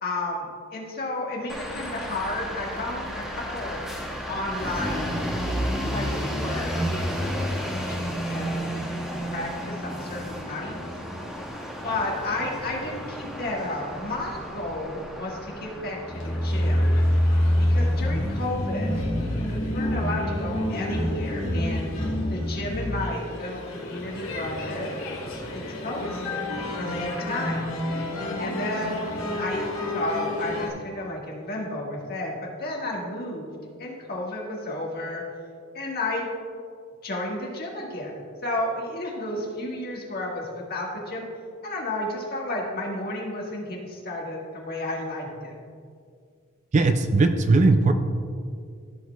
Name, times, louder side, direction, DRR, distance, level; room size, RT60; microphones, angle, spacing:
voice 1, 0.0-3.8 4.3-5.2 5.9-10.8 11.8-17.0 17.7-18.9 19.2-21.9 22.3-25.0 25.5-26.4 26.8-27.7 28.4-29.1 29.4-29.6 29.9-35.2 35.7-36.3 37.0-38.1 38.4-41.2 41.6-45.5, left 1 dB, 50° left, -2 dB, 1.7 m, -32 dB
sound 1, 1.5-18.4, equal, ahead, 0.9 m, -32 dB
sound 2, 16.0-30.7, left 1 dB, 70° left, 1.9 m, -27 dB
voice 2, 46.7-47.9, right 3 dB, 35° right, 8 dB, 0.4 m, -19 dB
14.5 x 6.6 x 2.3 m, 2.2 s
head